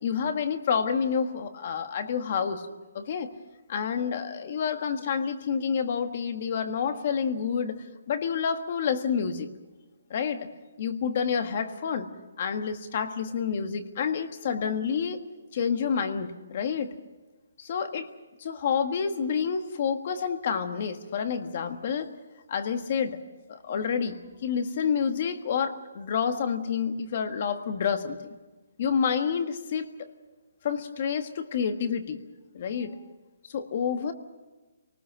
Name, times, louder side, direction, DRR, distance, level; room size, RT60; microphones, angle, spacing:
voice 1, 0.0-2.7 2.9-3.3 3.7-9.5 10.1-10.5 10.8-12.1 12.4-15.2 15.5-16.9 17.6-18.1 18.4-22.1 22.5-23.2 23.5-28.2 28.8-29.9 30.6-32.2 32.5-33.0 33.5-34.1, left 6 dB, 35° left, 8 dB, 1.5 m, -28 dB
27.5 x 19.0 x 6.3 m, 1.2 s
hypercardioid pair, 175°, 0 cm